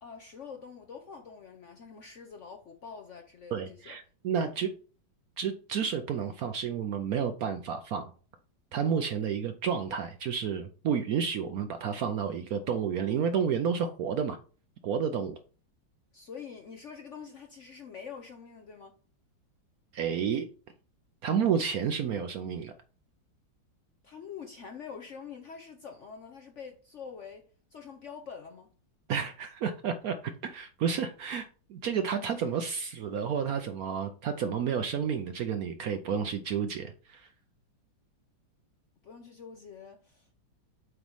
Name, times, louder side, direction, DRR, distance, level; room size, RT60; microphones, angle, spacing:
voice 1, 0.0-4.0 16.1-18.9 24.0-27.4 27.7-28.7 39.0-40.3, left 6 dB, 60° left, 0.8 m, -45 dB
voice 2, 3.5-4.7 5.4-8.1 8.7-14.4 14.8-15.4 19.9-20.5 21.2-22.7 29.1-37.3, right 7 dB, 70° right, 0.9 m, -31 dB
8.0 x 3.1 x 5.3 m
omnidirectional pair, 2.0 m